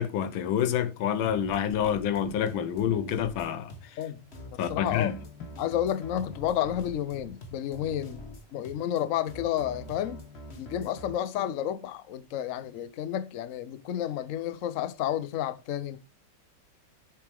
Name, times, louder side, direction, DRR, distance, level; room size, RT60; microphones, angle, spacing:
voice 1, 0.0-3.7 4.6-5.2, left 9 dB, 90° left, 1.7 m, -28 dB
sound 1, 1.2-11.1, left 1 dB, 35° left, 1.4 m, -45 dB
voice 2, 4.0-5.1 5.6-8.2 8.5-10.2 10.6-16.0, left 11 dB, 65° left, 0.8 m, -31 dB
8.2 x 6.8 x 3.5 m
omnidirectional pair, 2.1 m